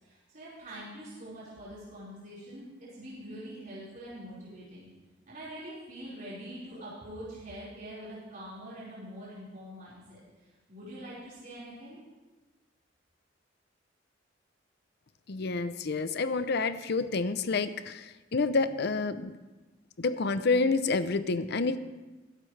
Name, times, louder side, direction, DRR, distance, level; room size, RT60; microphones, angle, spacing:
voice 1, 0.0-2.7 3.0-4.9 5.3-10.2 10.7-12.0, right 1 dB, 45° right, -9 dB, 4.8 m, -44 dB
voice 2, 15.3-19.4 20.0-21.8, left 3 dB, 60° left, 12 dB, 0.6 m, -28 dB
21.0 x 11.0 x 3.3 m, 1.2 s
head